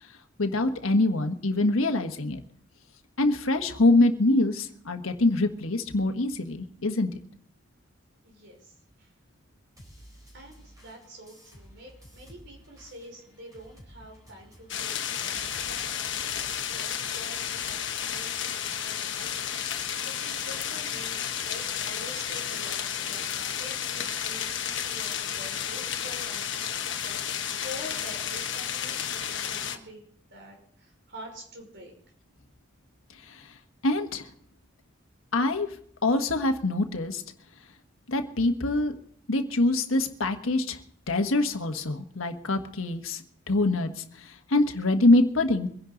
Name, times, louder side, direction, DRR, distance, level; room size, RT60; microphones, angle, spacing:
voice 1, 0.4-2.4 3.2-7.1 33.1-33.5 33.8-34.3 35.3-35.7 36.0-37.2 38.1-38.9 39.3-40.8 41.1-45.7, left 2 dB, 85° left, 6 dB, 1.4 m, -25 dB
voice 2, 8.2-9.1 10.3-15.9 16.2-30.0 30.3-31.9, equal, 55° right, 1 dB, 5.2 m, -47 dB
sound 1, 9.8-17.7, equal, 15° right, 4.1 m, -53 dB
sound 2, 14.7-29.8, left 9 dB, 60° left, 1.2 m, -32 dB
24.0 x 11.0 x 3.9 m, 0.62 s
head